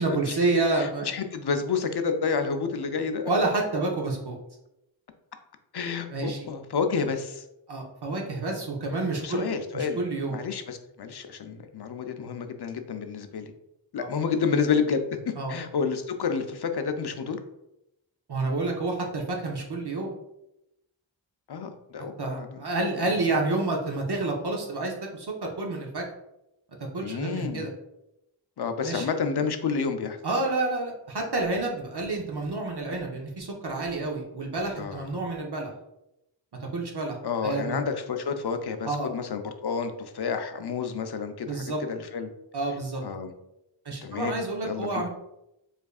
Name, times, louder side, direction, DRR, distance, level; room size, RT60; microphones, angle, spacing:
voice 1, 0.0-1.1 3.3-4.4 6.1-6.5 7.7-9.5 9.7-10.4 14.0-14.1 15.4-15.5 18.3-20.1 22.2-26.0 26.9-27.7 28.8-29.1 30.2-35.7 36.6-37.2 37.4-37.8 38.8-39.1 41.4-41.8 42.5-43.0 43.9-45.1, right 2 dB, 60° right, 0 dB, 0.7 m, -29 dB
voice 2, 0.8-3.3 5.7-7.4 9.2-10.0 10.3-13.5 13.9-17.4 21.5-23.0 27.0-27.7 28.6-30.2 34.8-35.1 37.2-42.3 43.0-43.3 44.0-44.3 44.6-45.0, left 5 dB, 60° left, 7 dB, 0.5 m, -30 dB
4.7 x 2.5 x 2.3 m, 0.87 s
wide cardioid pair, 45°, 46 cm